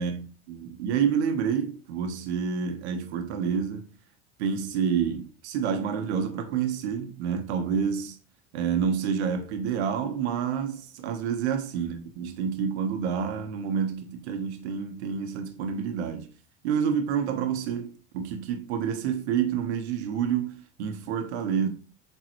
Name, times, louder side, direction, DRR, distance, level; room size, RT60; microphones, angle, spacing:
voice 1, 0.0-3.9 4.4-8.2 8.5-16.3 16.6-21.7, right 7 dB, 85° right, 1.2 m, -28 dB
7.8 x 4.0 x 3.1 m
supercardioid pair, 105°, 32 cm